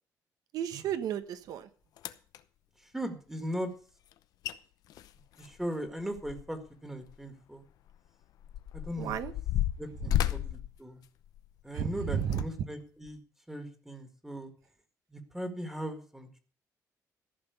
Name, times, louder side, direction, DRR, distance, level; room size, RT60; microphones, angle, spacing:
voice 1, 0.5-1.7 9.0-9.3 10.0-10.2 11.7-12.4, right 9 dB, 80° right, 11 dB, 1.3 m, -33 dB
sound 1, 1.5-1.6 2.0-2.4 4.1-4.2 4.4-4.6 4.9-6.7 7.0-7.2 7.9-11.6 12.2-12.4 13.1-13.2, left 12 dB, 90° left, 0.8 m, -33 dB
voice 2, 2.9-3.7 5.4-7.6 8.7-9.2 9.8-11.0 11.6-13.2 13.5-14.5 15.1-16.4, equal, 5° right, 7 dB, 1.8 m, -38 dB
14.5 x 5.9 x 8.1 m, 0.41 s
cardioid pair, 145°, 6 cm